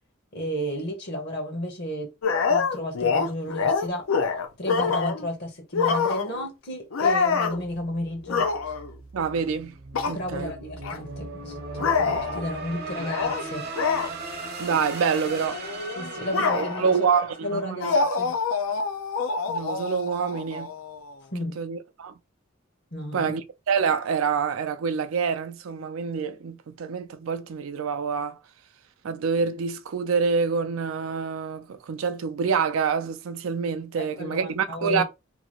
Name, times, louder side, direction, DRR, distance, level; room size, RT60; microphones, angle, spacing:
voice 1, 0.3-2.1 2.5-4.0 4.6-8.5 10.1-13.7 15.9-17.1 17.4-18.3 21.3-21.6 22.9-23.4 34.0-35.0, equal, 55° left, 0.9 m, -33 dB
sound 1, 2.2-5.3 5.7-6.5 6.9-7.6 8.2-8.9 9.9-10.2 10.8-11.0 11.8-12.4 13.0-13.4 13.7-14.1 14.7-14.9 15.1-17.0 17.8-21.1, left 5 dB, 85° left, 0.5 m, -26 dB
sound 2, 7.5-18.5, right 3 dB, 50° right, 0.8 m, -38 dB
voice 2, 9.1-9.7 10.1-10.5 14.6-15.6 16.5-17.9 19.5-20.7 21.6-22.1 23.1-23.4 23.7-28.4 29.0-35.0, right 6 dB, 80° right, 0.4 m, -26 dB
2.7 x 2.4 x 3.0 m
head